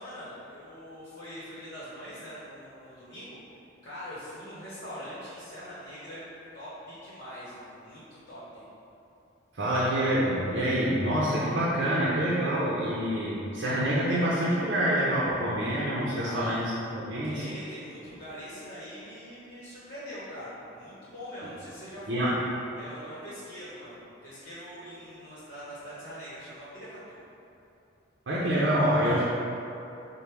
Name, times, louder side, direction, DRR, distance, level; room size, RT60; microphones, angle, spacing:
voice 1, 0.0-3.4 3.8-6.2 6.5-8.6 16.1-16.6 17.2-22.3 22.7-27.2, equal, 45° left, -10 dB, 1.0 m, -43 dB
voice 2, 9.5-17.4 22.1-22.3 28.3-29.2, equal, 60° right, -7 dB, 0.6 m, -26 dB
5.2 x 2.2 x 4.4 m, 2.8 s
head